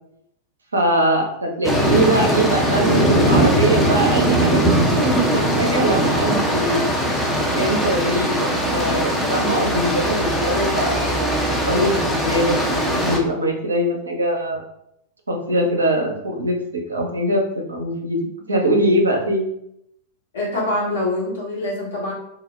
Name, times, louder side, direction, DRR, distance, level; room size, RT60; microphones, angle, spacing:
voice 1, 0.7-4.6 4.9-6.9 7.5-12.6 12.9-14.6 15.3-18.2 18.5-19.5, right 1 dB, 75° right, 1 dB, 0.5 m, -22 dB
sound 1, 1.6-13.2, right 1 dB, 5° left, 0.5 m, -20 dB
voice 2, 20.3-22.1, left 1 dB, 65° left, -5 dB, 1.0 m, -25 dB
2.2 x 2.0 x 3.1 m, 0.76 s
figure-of-eight pair, 90°, 0 cm